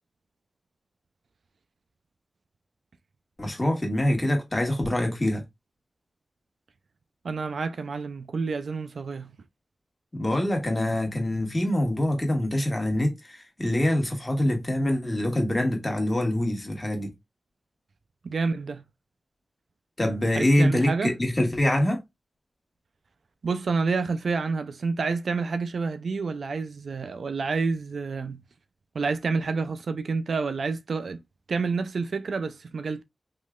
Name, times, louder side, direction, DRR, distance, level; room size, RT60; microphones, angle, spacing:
voice 1, 3.4-5.4 10.1-17.1 20.0-22.0, left 1 dB, 25° left, 1.7 m, -25 dB
voice 2, 7.2-9.3 18.2-18.8 20.4-21.1 23.4-28.4 28.9-31.2 31.5-33.0, right 4 dB, 80° right, 0.4 m, -28 dB
3.6 x 3.1 x 2.3 m
cardioid pair, 60°, 0 cm